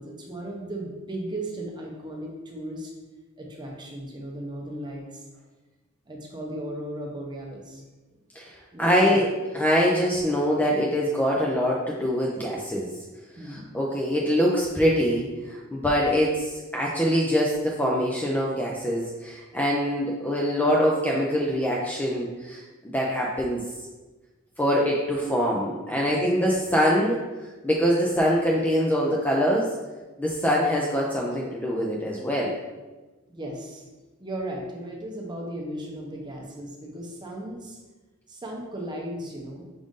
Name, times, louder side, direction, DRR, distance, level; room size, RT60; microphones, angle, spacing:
voice 1, 0.0-2.9 3.4-5.3 6.1-7.8 8.7-9.2 13.4-13.7 26.0-26.2 33.3-33.9 34.2-37.8 38.3-39.7, right 1 dB, 20° right, -1 dB, 0.7 m, -36 dB
voice 2, 8.4-9.3 9.5-12.9 13.5-23.6 24.6-27.2 27.6-29.7 30.2-32.5, equal, 5° left, -3 dB, 0.4 m, -24 dB
5.1 x 2.5 x 3.6 m, 1.2 s
head